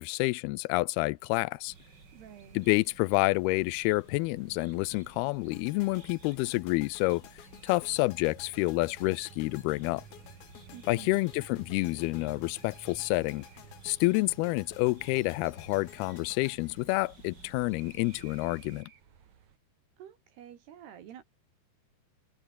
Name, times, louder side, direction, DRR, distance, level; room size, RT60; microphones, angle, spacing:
voice 1, 0.0-1.7 2.5-7.2 7.6-10.0 10.9-13.5 13.8-18.9, left 22 dB, 85° left, 2.3 m, -28 dB
sound 1, 0.9-19.6, right 8 dB, 50° right, 3.3 m, -57 dB
sound 2, 1.7-18.8, right 3 dB, 25° right, 4.3 m, -55 dB
voice 2, 2.1-2.7 10.7-11.2 20.0-21.2, right 10 dB, 70° right, 4.1 m, -49 dB
sound 3, 5.5-17.7, left 10 dB, 65° left, 3.8 m, -54 dB
omnidirectional pair, 4.9 m